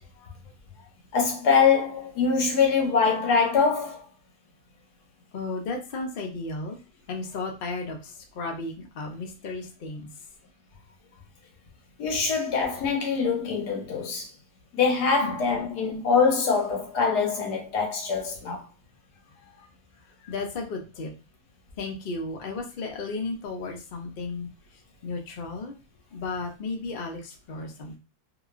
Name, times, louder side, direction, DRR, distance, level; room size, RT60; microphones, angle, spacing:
voice 1, 1.1-4.0 12.0-14.3 14.7-18.6, left 5 dB, 80° left, 1.4 m, -23 dB
voice 2, 5.3-6.8 7.1-8.0 8.4-10.1 15.2-15.3 20.3-21.1 21.8-24.5 25.0-25.7 26.1-28.0, left 3 dB, 60° left, 0.5 m, -34 dB
3.0 x 2.3 x 2.4 m
omnidirectional pair, 1.7 m